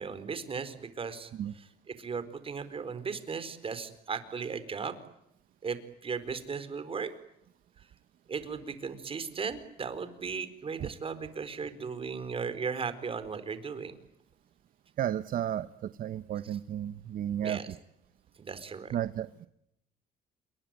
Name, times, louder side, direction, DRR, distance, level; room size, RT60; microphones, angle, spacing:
voice 1, 0.0-1.3 2.0-4.9 5.6-7.1 8.3-14.0 17.4-17.6 18.4-18.9, right 5 dB, 35° right, 12 dB, 4.4 m, -36 dB
voice 2, 15.0-17.8 18.9-19.5, right 10 dB, 55° right, 13 dB, 1.0 m, -33 dB
28.5 x 23.0 x 9.2 m, 0.80 s
cardioid pair, 110°, 17 cm